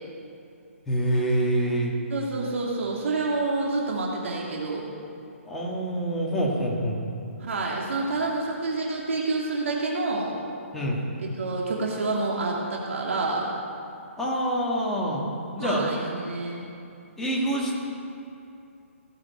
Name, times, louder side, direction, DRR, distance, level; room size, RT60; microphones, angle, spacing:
voice 1, 0.9-1.9 5.5-7.0 10.7-11.0 14.2-15.2 15.5-15.9 17.2-17.7, right 1 dB, 5° left, -5 dB, 1.7 m, -26 dB
voice 2, 2.1-4.8 7.4-10.4 11.2-13.5 15.6-16.6, right 3 dB, 65° right, -3 dB, 2.7 m, -28 dB
17.5 x 8.1 x 9.4 m, 2.7 s
hypercardioid pair, 170°, 8 cm